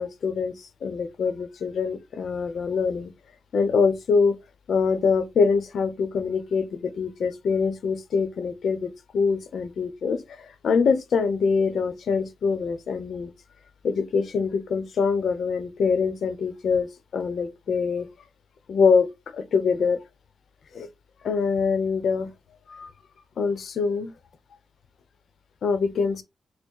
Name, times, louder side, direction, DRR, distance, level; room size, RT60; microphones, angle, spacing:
voice 1, 0.0-3.1 3.5-4.4 4.7-13.3 13.8-18.1 18.7-19.1 19.3-20.0 20.7-20.9 21.2-22.3 22.7-22.9 23.4-24.1 25.6-26.2, left 5 dB, 70° left, 0.7 m, -24 dB
4.5 x 2.1 x 4.5 m
cardioid pair, 60°, 0 cm